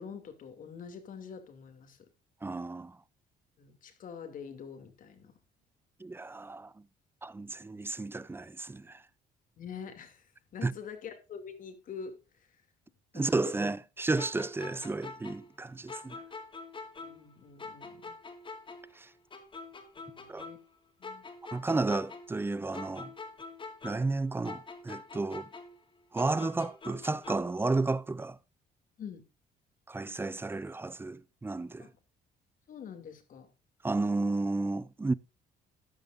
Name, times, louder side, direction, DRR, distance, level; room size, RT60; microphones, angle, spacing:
voice 1, 0.0-2.0 3.6-5.3 9.6-10.3 10.5-12.1 13.1-13.5 16.9-18.1 19.9-20.6 21.0-21.2 29.0-29.2 31.8-31.9 32.7-33.5, left 6 dB, 50° left, 2.7 m, -45 dB
voice 2, 2.4-3.0 6.0-6.7 7.2-9.0 10.6-10.7 13.1-16.2 19.0-19.1 20.3-20.5 21.5-23.1 23.8-25.4 26.1-28.4 29.9-31.9 33.8-35.1, right 3 dB, 15° right, 0.5 m, -32 dB
sound 1, 14.2-17.3 17.6-20.7 21.0-24.2 24.4-27.6, left 3 dB, 30° left, 3.1 m, -45 dB
14.5 x 10.5 x 2.6 m
cardioid pair, 110°, 17 cm